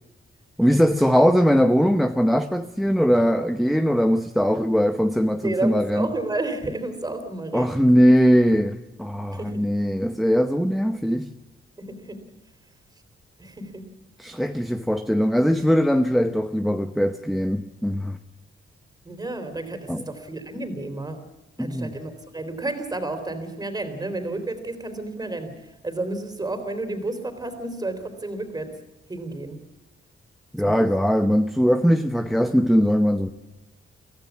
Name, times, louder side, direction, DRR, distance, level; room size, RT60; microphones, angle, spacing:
voice 1, 0.6-6.1 7.5-11.3 14.2-18.2 19.9-20.1 21.6-21.9 30.5-33.3, equal, ahead, 0.8 m, -20 dB
voice 2, 5.4-7.8 9.3-10.0 11.8-12.2 13.4-13.9 19.0-21.2 21.6-25.5 25.8-28.7 29.1-29.6 30.6-30.9, right 2 dB, 20° right, 3.6 m, -31 dB
24.0 x 16.0 x 8.5 m
wide cardioid pair, 140°, 21 cm